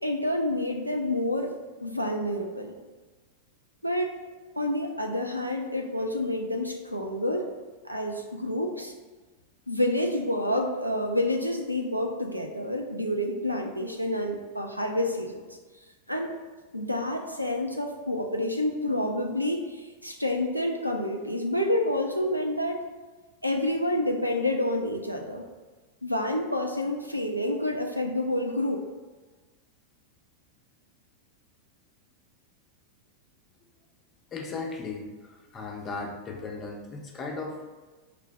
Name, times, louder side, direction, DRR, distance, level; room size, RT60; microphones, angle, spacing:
voice 1, 0.0-1.5 1.8-2.7 3.8-4.1 4.6-7.5 7.8-8.9 9.7-15.4 16.1-16.3 16.7-22.8 23.4-25.4 26.0-28.8, left 1 dB, 90° right, 2 dB, 0.5 m, -28 dB
voice 2, 34.3-35.1 35.5-37.7, left 3 dB, 25° left, 1 dB, 0.6 m, -36 dB
5.0 x 2.2 x 3.6 m, 1.3 s
figure-of-eight pair, 90°, 0 cm